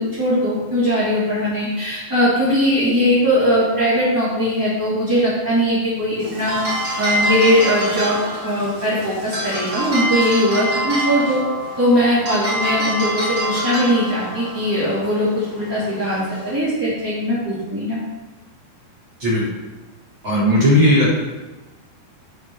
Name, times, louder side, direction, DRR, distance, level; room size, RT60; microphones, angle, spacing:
voice 1, 0.0-6.6 7.0-8.1 8.4-11.4 11.8-18.0, equal, 5° right, -13 dB, 2.2 m, -20 dB
sound 1, 6.2-16.6, right 1 dB, 30° right, 3.9 m, -26 dB
voice 2, 20.2-21.1, left 1 dB, 50° right, -6 dB, 1.5 m, -15 dB
9.6 x 5.1 x 5.6 m, 1.2 s
omnidirectional pair, 4.3 m